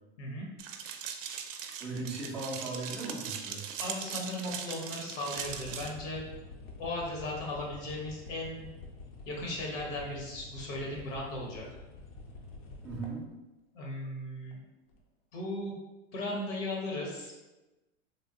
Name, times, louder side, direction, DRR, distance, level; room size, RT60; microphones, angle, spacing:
sound 1, 0.6-5.9, right 8 dB, 80° right, 0.5 m, -40 dB
voice 1, 1.8-3.6 12.8-13.3, right 3 dB, 5° right, -8 dB, 0.3 m, -37 dB
voice 2, 3.8-6.2 6.8-8.7 9.3-11.6 13.7-14.6 15.3-15.7 16.1-17.4, left 1 dB, 65° left, -2 dB, 1.2 m, -37 dB
sound 2, 5.4-13.3 14.5-14.6 14.9-15.0, left 3 dB, 45° left, 0.6 m, -48 dB
3.4 x 2.0 x 2.8 m, 1.1 s
hypercardioid pair, 125°, 38 cm